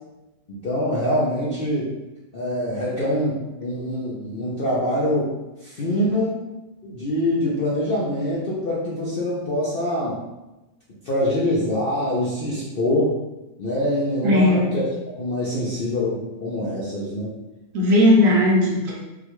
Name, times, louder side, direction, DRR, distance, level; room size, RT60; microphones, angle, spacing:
voice 1, 0.5-1.9 2.3-5.3 5.6-6.4 6.8-10.2 11.1-13.1 13.6-17.3, left 1 dB, 65° left, -8 dB, 0.5 m, -24 dB
voice 2, 14.2-14.7 17.7-19.0, left 1 dB, 65° right, -3 dB, 0.9 m, -17 dB
3.8 x 2.2 x 3.0 m, 1.0 s
omnidirectional pair, 1.9 m